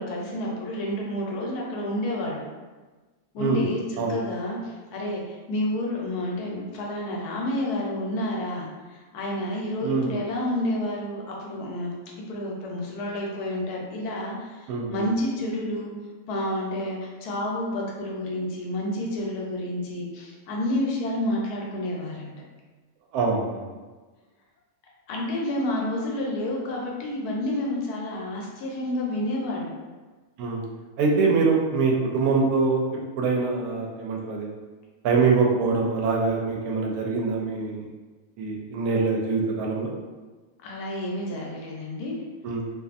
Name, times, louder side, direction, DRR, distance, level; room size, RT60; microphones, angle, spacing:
voice 1, 0.0-2.4 3.3-11.9 12.3-15.9 16.3-22.3 25.1-29.8 40.6-42.2, left 1 dB, 90° left, -2 dB, 1.2 m, -29 dB
voice 2, 14.7-15.0 23.1-23.7 30.4-30.6 31.0-32.8 33.2-34.5 35.0-37.8 38.4-39.9 42.4-42.6, right 4 dB, 80° right, -1 dB, 1.0 m, -24 dB
2.6 x 2.5 x 2.4 m, 1.3 s
omnidirectional pair, 1.6 m